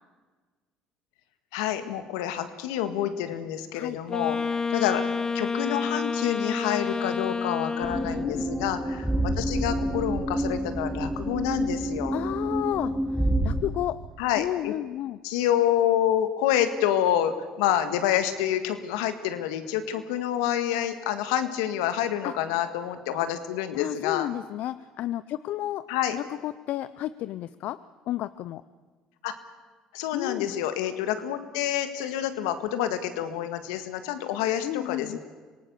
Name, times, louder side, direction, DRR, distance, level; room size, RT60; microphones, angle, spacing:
voice 1, 1.5-4.4 4.7-5.0 5.3-12.2 14.2-14.7 15.2-24.3 25.9-26.2 29.2-29.3 29.9-35.2, left 11 dB, 85° left, 9 dB, 1.7 m, -28 dB
Wind instrument woodwind instrument, 4.1-8.4, left 5 dB, 25° left, 1.0 m, -29 dB
sound 1, 7.8-13.6, right 1 dB, 10° right, 3.1 m, -28 dB
voice 2, 12.1-12.9 13.4-14.0 14.4-15.2 22.2-22.3 23.7-25.8 26.1-27.8 28.1-28.6 30.1-30.6 34.6-35.2, left 13 dB, 65° left, 15 dB, 0.6 m, -31 dB
26.0 x 18.5 x 7.0 m, 1.4 s
hypercardioid pair, 70°, 3 cm